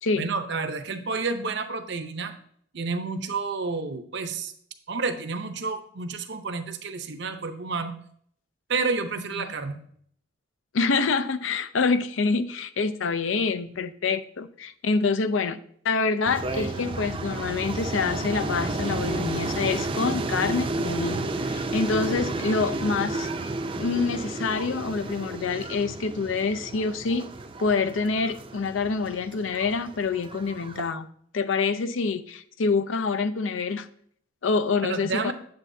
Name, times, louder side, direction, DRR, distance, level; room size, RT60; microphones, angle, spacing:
voice 1, 0.2-2.3 2.7-4.5 4.9-8.0 8.7-9.8 34.8-35.3, right 4 dB, 65° right, 8 dB, 0.8 m, -30 dB
voice 2, 10.7-15.6 15.8-23.3 23.8-27.3 27.6-31.1 31.3-33.9 34.4-35.3, left 4 dB, 80° left, 13 dB, 0.5 m, -26 dB
sound 1, 16.3-30.9, right 2 dB, 25° right, 0.5 m, -32 dB
8.2 x 7.9 x 2.7 m, 0.63 s
head